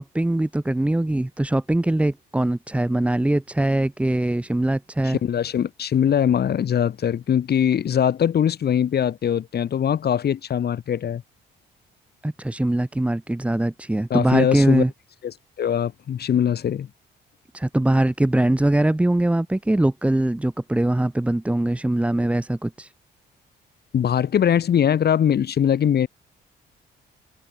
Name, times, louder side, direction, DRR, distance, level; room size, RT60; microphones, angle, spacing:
voice 1, 0.0-5.2 12.2-14.9 17.5-22.9, right 1 dB, 5° right, 0.6 m, -22 dB
voice 2, 5.0-11.2 14.1-14.8 15.2-16.9 23.9-26.1, left 9 dB, 55° left, 1.4 m, -21 dB
cardioid pair, 90°, 20 cm